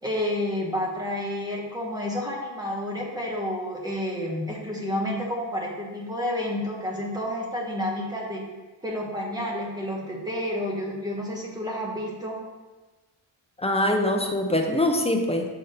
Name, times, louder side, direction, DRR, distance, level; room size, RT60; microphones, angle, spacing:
voice 1, 0.0-8.5 8.8-12.4, left 1 dB, 10° right, -2 dB, 1.1 m, -30 dB
voice 2, 13.6-15.5, left 1 dB, 15° left, 3 dB, 0.5 m, -23 dB
6.6 x 3.6 x 5.6 m, 1.2 s
wide cardioid pair, 155°, 49 cm